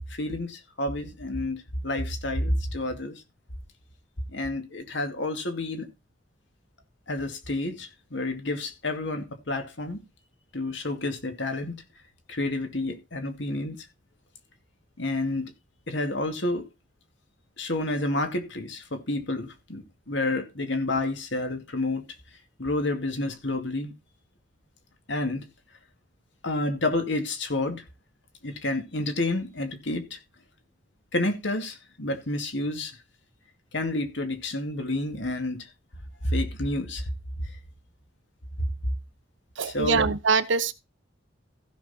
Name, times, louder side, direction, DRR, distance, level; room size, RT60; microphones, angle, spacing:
voice 1, 0.1-3.2 4.3-5.9 7.1-10.0 10.5-11.7 12.3-13.9 15.0-15.5 15.9-16.7 17.6-22.1 22.6-23.9 25.1-25.4 26.4-27.8 28.4-30.2 31.1-33.0 33.7-35.7 36.2-37.1 37.4-37.5 38.6-38.7 39.6-40.1, left 2 dB, 65° left, 2.4 m, -29 dB
voice 2, 39.6-40.7, right 5 dB, 70° right, 0.8 m, -23 dB
15.0 x 6.0 x 4.3 m
head